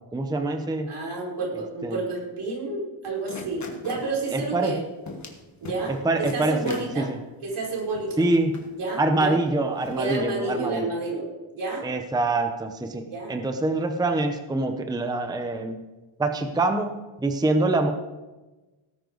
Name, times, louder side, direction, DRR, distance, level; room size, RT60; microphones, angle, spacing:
voice 1, 0.1-0.9 1.8-2.0 4.3-4.8 5.9-7.2 8.2-8.5 9.0-10.9 11.8-15.8 16.2-16.9 17.2-17.9, right 2 dB, 10° right, 6 dB, 0.7 m, -25 dB
voice 2, 0.9-4.8 5.6-7.1 7.4-8.1 8.7-9.4 10.0-11.2 11.5-11.8 13.1-13.3, right 3 dB, 80° right, -3 dB, 4.8 m, -30 dB
sound 1, 3.0-4.1 4.6-4.7 5.1-5.4 5.6-6.0 6.2-6.9 7.5-7.6 7.9-8.7 9.4-9.5 9.8-10.1, left 3 dB, 35° left, 1.6 m, -38 dB
18.0 x 9.9 x 3.9 m, 1.1 s
wide cardioid pair, 170°, 49 cm